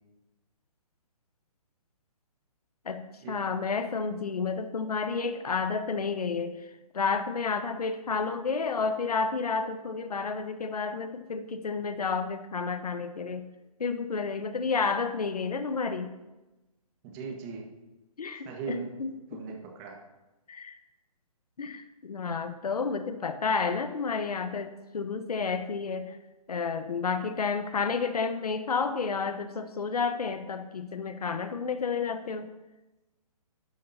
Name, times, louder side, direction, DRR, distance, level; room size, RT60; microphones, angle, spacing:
voice 1, 2.8-6.6 6.9-13.5 13.8-16.1 18.2-19.4 20.5-20.8 21.6-26.2 26.5-32.5, left 5 dB, 80° left, 10 dB, 1.1 m, -31 dB
voice 2, 17.0-17.7 18.4-18.9 19.3-20.0, right 5 dB, 25° right, 2 dB, 1.6 m, -39 dB
12.5 x 11.5 x 2.8 m, 1.1 s
hypercardioid pair, 150°, 19 cm